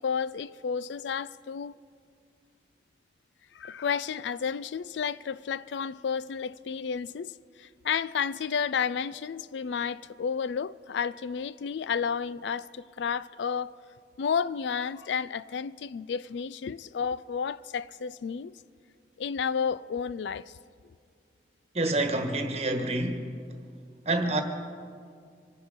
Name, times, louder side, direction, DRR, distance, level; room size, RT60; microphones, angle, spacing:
voice 1, 0.0-1.7 3.5-13.7 14.2-18.6 19.2-20.5, left 6 dB, 80° left, 0.4 m, -31 dB
voice 2, 21.7-23.2 24.0-24.4, right 2 dB, 35° right, 1.3 m, -27 dB
24.5 x 10.5 x 5.2 m
head